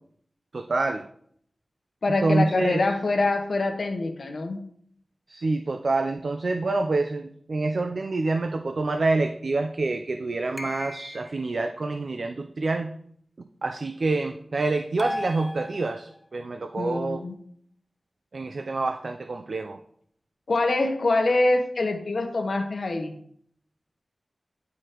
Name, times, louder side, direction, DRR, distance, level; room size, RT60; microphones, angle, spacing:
voice 1, 0.5-1.0 2.2-2.8 5.3-12.9 13.6-17.2 18.3-19.8, right 3 dB, 65° right, 7 dB, 0.4 m, -27 dB
voice 2, 2.0-4.6 16.8-17.3 20.5-23.2, left 2 dB, 70° left, 5 dB, 0.9 m, -25 dB
sound 1, 10.6-11.5 15.0-16.2, left 1 dB, 15° left, 0.7 m, -35 dB
9.3 x 4.9 x 2.9 m, 0.65 s
wide cardioid pair, 80°, 0 cm